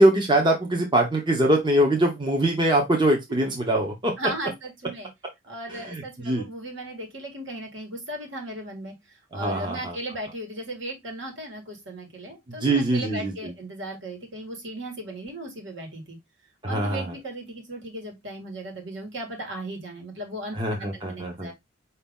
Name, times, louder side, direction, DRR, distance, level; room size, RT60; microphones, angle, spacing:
voice 1, 0.0-4.1 5.9-6.5 9.3-10.0 12.6-13.5 16.6-17.1 20.6-21.5, right 1 dB, 25° right, 0.8 m, -22 dB
voice 2, 4.2-5.1 5.5-8.9 9.3-16.2 16.6-21.5, right 1 dB, 65° right, 1.6 m, -36 dB
5.0 x 2.9 x 3.5 m
head